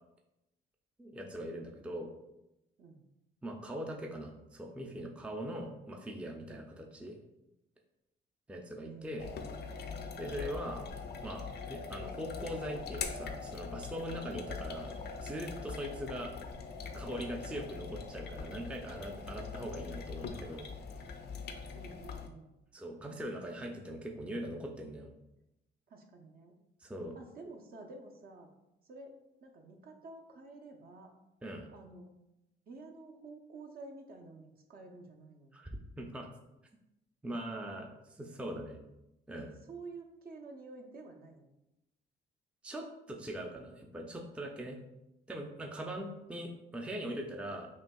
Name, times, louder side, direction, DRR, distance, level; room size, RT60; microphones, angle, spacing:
voice 1, 1.0-2.1 3.4-7.2 8.5-9.3 10.2-10.8 11.2-14.9 15.2-16.3 16.9-20.7 22.7-25.1 26.8-27.1 31.4-31.7 35.5-36.3 37.2-38.8 39.3-39.5 42.6-44.8 45.3-47.7, right 1 dB, 5° right, 1 dB, 0.4 m, -41 dB
voice 2, 8.8-10.5 21.7-22.5 25.9-26.5 27.1-28.5 28.8-29.1 29.4-31.1 31.7-32.1 32.7-35.6 39.7-41.5 45.8-46.5, right 3 dB, 50° right, 2 dB, 0.7 m, -50 dB
sound 1, 9.2-22.3, left 5 dB, 55° left, 0.5 m, -42 dB
5.2 x 2.7 x 2.3 m, 0.90 s
cardioid pair, 90°, 20 cm